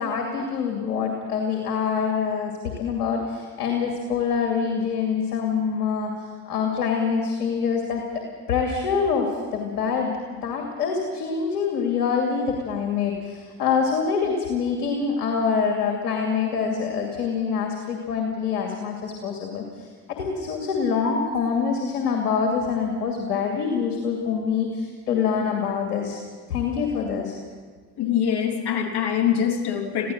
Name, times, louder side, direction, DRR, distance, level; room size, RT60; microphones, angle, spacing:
voice 1, 0.0-2.5 2.8-8.0 8.5-19.9 20.2-26.2 26.5-27.4, left 6 dB, 85° left, 2 dB, 2.6 m, -25 dB
voice 2, 28.0-30.1, left 8 dB, 55° left, 4 dB, 3.2 m, -24 dB
23.0 x 16.0 x 7.9 m, 1.5 s
hypercardioid pair, 55°, 46 cm